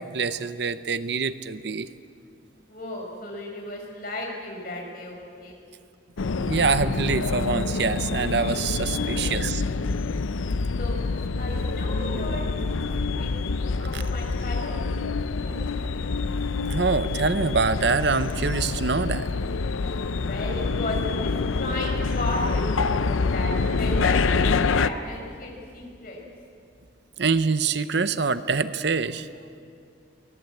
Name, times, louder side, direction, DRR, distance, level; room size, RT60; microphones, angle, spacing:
voice 1, 0.0-1.9 6.4-9.6 13.9-14.0 16.7-19.3 27.2-29.3, right 4 dB, 60° right, 13 dB, 0.7 m, -25 dB
voice 2, 2.7-5.6 9.0-9.3 10.8-11.0 11.4-12.6 13.0-14.8 15.0-15.1 15.4-15.7 20.2-26.2, left 1 dB, 45° left, -1 dB, 5.3 m, -35 dB
sound 1, 6.2-24.9, left 4 dB, 85° left, 0.6 m, -26 dB
24.0 x 18.0 x 8.2 m, 2.4 s
head